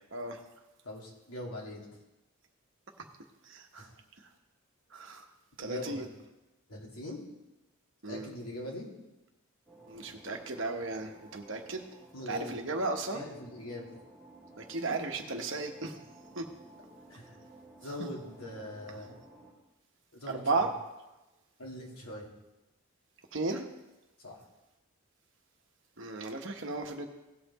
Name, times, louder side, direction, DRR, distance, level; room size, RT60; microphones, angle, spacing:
voice 1, 0.1-0.4 3.5-3.9 4.9-5.2 5.6-6.0 8.0-8.3 9.9-11.8 12.3-13.2 14.6-15.9 16.4-16.5 20.3-20.7 23.3-23.6 26.0-27.1, right 3 dB, 55° right, 3 dB, 1.1 m, -34 dB
voice 2, 0.8-1.9 3.8-3.9 5.6-6.1 6.7-7.2 8.1-8.9 12.1-12.7 13.1-13.9 17.1-17.4 17.8-19.2 20.1-20.7 21.6-22.3 24.2-24.4, left 1 dB, 90° left, -3 dB, 2.5 m, -42 dB
sound 1, 9.7-19.5, right 2 dB, 5° left, 2.2 m, -55 dB
17.0 x 5.7 x 4.1 m, 1.0 s
head